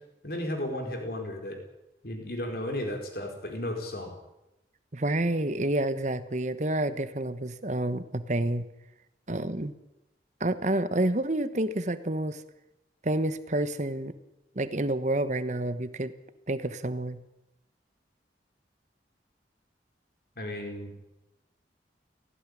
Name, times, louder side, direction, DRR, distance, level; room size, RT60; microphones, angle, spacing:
voice 1, 0.2-1.6 2.0-4.2 20.4-20.9, left 1 dB, 55° left, 3 dB, 4.7 m, -34 dB
voice 2, 4.9-8.6 9.3-9.7 10.4-12.4 13.0-14.1 14.5-16.1 16.5-17.2, right 1 dB, 40° right, 13 dB, 1.2 m, -29 dB
18.0 x 16.0 x 9.9 m, 0.92 s
head